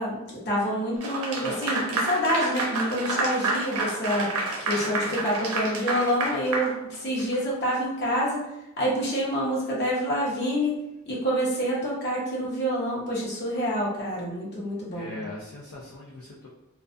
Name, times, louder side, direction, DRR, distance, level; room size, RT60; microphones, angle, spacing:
voice 1, 0.0-4.3 4.6-8.4 8.8-10.7 11.0-15.2, equal, 50° left, -5 dB, 0.8 m, -27 dB
Clapping / Applause, 1.0-7.4, right 2 dB, 85° right, 0.6 m, -29 dB
voice 2, 4.5-5.3 14.9-16.5, left 1 dB, 80° left, -4 dB, 0.5 m, -41 dB
2.3 x 2.2 x 2.5 m, 0.95 s
head